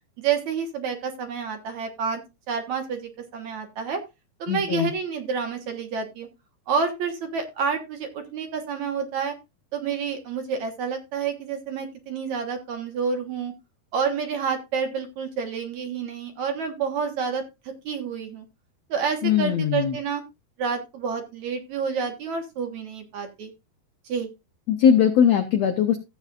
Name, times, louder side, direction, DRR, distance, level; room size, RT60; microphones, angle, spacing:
voice 1, 0.2-2.2 2.5-4.0 4.4-6.3 6.7-9.4 9.7-13.5 13.9-18.5 18.9-20.2 20.6-23.5 24.1-24.3, right 6 dB, 60° right, 4 dB, 2.4 m, -29 dB
voice 2, 4.5-4.9 19.2-20.0 24.7-26.0, left 8 dB, 90° left, 6 dB, 1.5 m, -20 dB
15.0 x 8.3 x 2.5 m, 0.25 s
omnidirectional pair, 4.4 m